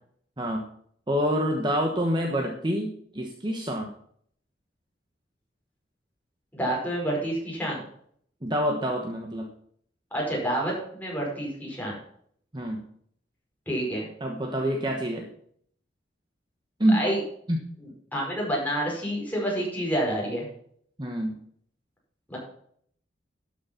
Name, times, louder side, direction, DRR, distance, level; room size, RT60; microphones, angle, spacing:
voice 1, 0.4-0.7 1.1-3.9 8.4-9.5 12.5-12.8 14.2-15.3 16.8-17.0 17.5-17.6 21.0-21.4, equal, 25° right, 2 dB, 1.2 m, -27 dB
voice 2, 6.5-7.8 10.1-11.9 13.7-14.1 16.9-17.2 18.1-20.4 22.3-22.4, right 1 dB, 10° left, -4 dB, 5.0 m, -28 dB
12.5 x 6.5 x 5.8 m, 0.63 s
head